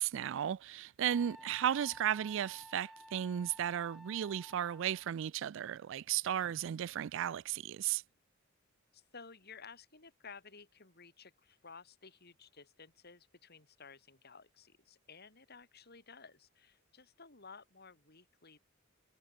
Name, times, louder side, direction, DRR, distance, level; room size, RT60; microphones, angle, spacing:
voice 1, 0.0-8.0, right 10 dB, 65° right, 0.3 m, -35 dB
Wind instrument woodwind instrument, 1.0-5.1, equal, ahead, 1.4 m, -54 dB
voice 2, 8.9-18.6, left 5 dB, 50° left, 4.9 m, -55 dB
head